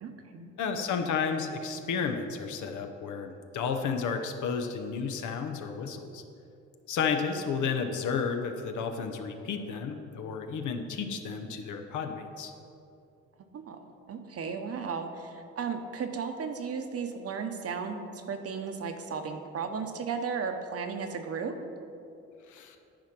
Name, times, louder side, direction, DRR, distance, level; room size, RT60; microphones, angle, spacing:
voice 1, 0.0-0.5 13.5-13.8 14.1-21.6, right 5 dB, 50° right, 6 dB, 0.9 m, -35 dB
voice 2, 0.6-6.2 6.9-12.5 22.5-22.8, left 5 dB, 75° left, 6 dB, 0.9 m, -32 dB
10.5 x 4.4 x 6.0 m, 2.6 s
cardioid pair, 90°, 30 cm